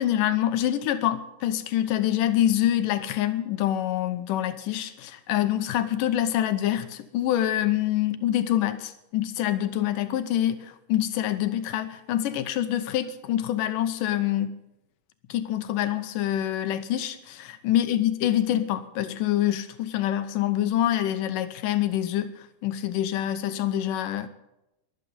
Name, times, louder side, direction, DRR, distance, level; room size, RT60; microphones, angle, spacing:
voice 1, 0.0-14.6 15.3-24.3, left 12 dB, 85° left, 9 dB, 2.5 m, -26 dB
23.5 x 9.1 x 5.4 m, 0.89 s
omnidirectional pair, 3.7 m